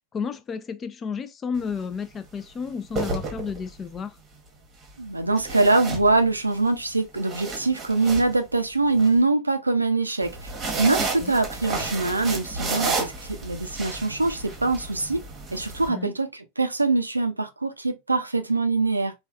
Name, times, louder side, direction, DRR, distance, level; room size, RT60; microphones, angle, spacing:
voice 1, 0.1-4.2 11.0-11.3 15.9-16.1, left 6 dB, 20° left, 0.3 m, -32 dB
sound 1, 1.5-1.8 2.7-3.9 5.4-6.6 7.0-9.1 10.2-15.9, right 3 dB, 25° right, 1.0 m, -32 dB
voice 2, 5.0-10.5 10.8-15.2 15.5-19.1, right 3 dB, 80° right, 0.4 m, -23 dB
3.3 x 2.3 x 2.2 m
figure-of-eight pair, 90°, 0 cm